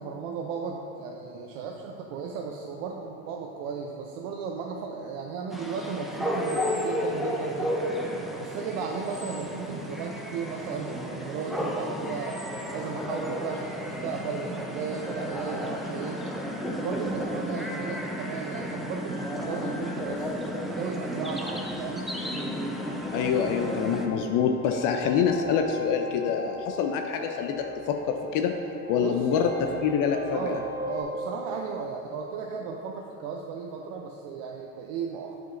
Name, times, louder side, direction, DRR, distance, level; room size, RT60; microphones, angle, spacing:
voice 1, 0.0-7.9 8.4-12.4 12.7-16.2 16.8-22.2 29.0-29.3 30.3-35.4, right 5 dB, 70° right, 1 dB, 0.6 m, -35 dB
sound 1, 5.5-24.1, equal, ahead, 0.5 m, -33 dB
sound 2, 13.6-31.0, left 2 dB, 20° right, 1.5 m, -43 dB
voice 2, 23.1-28.5 28.9-30.6, left 7 dB, 50° left, 5 dB, 0.5 m, -26 dB
7.6 x 5.1 x 2.5 m, 2.8 s
hypercardioid pair, 85°, 42 cm